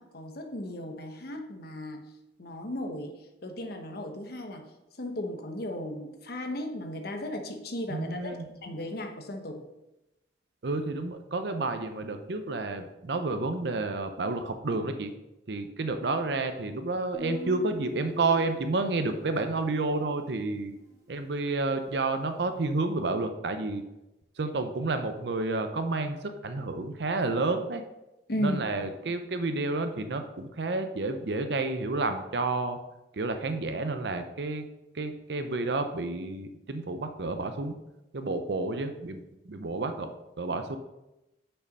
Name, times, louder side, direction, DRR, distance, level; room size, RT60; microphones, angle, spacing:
voice 1, 0.0-2.0 2.4-3.1 3.4-4.6 5.0-9.6 28.3-28.6, left 1 dB, 55° left, 4 dB, 1.0 m, -35 dB
voice 2, 7.9-8.4 10.6-15.1 15.5-20.7 21.1-23.8 24.4-27.8 28.4-32.8 33.1-34.6 34.9-37.7 38.1-40.1 40.4-40.8, right 3 dB, 65° right, 7 dB, 0.6 m, -30 dB
Guitar, 17.1-20.8, equal, 20° right, 2.4 m, -41 dB
6.7 x 5.6 x 5.2 m, 0.94 s
head